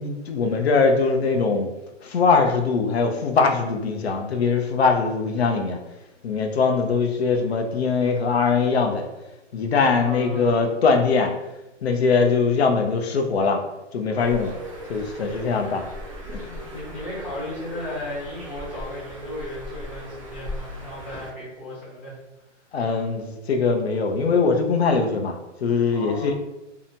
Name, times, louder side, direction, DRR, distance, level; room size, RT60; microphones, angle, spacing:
voice 1, 0.0-1.7 2.0-5.8 6.2-9.1 9.5-11.3 11.8-13.6 13.9-14.5 14.9-15.8 16.3-16.6 22.7-25.4 25.6-26.3, left 4 dB, 60° left, 4 dB, 0.5 m, -21 dB
voice 2, 9.8-10.6 16.7-22.2 25.9-26.3, left 1 dB, 30° left, -9 dB, 1.0 m, -35 dB
Bird, 14.2-21.3, equal, 30° right, 0.4 m, -38 dB
2.7 x 2.1 x 2.7 m, 0.96 s
hypercardioid pair, 175°, 37 cm